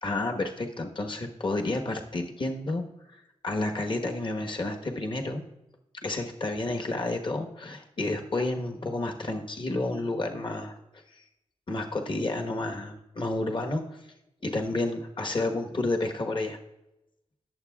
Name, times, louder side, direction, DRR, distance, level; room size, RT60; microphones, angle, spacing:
voice 1, 0.0-2.8 3.4-5.4 6.0-10.7 11.1-11.2 11.7-13.8 14.4-16.6, left 2 dB, 45° left, 3 dB, 1.4 m, -30 dB
21.0 x 7.2 x 2.4 m, 0.92 s
cardioid pair, 65°, 12 cm